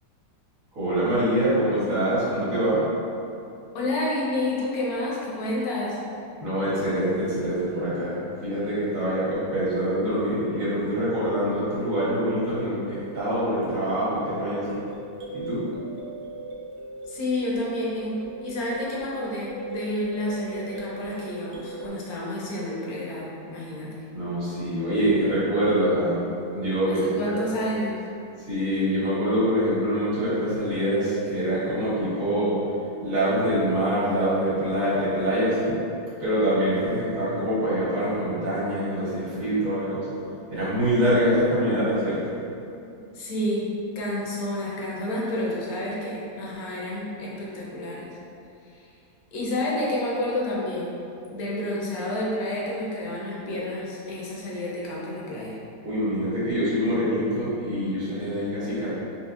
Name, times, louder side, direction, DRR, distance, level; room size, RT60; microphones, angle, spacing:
voice 1, 0.7-2.8 6.4-14.8 15.3-15.7 24.1-27.4 28.5-32.6 33.0-35.8 36.2-40.1 40.5-42.5 55.8-58.9, equal, 55° right, -11 dB, 1.4 m, -25 dB
voice 2, 3.7-6.0 17.1-24.0 26.9-28.0 43.1-43.7 43.9-48.2 48.7-48.9 49.3-51.0 51.3-55.6, left 1 dB, 65° left, -5 dB, 1.0 m, -29 dB
sound 1, 12.6-21.9, right 1 dB, 75° right, 1.2 m, -39 dB
4.0 x 2.8 x 2.4 m, 2.6 s
omnidirectional pair, 1.9 m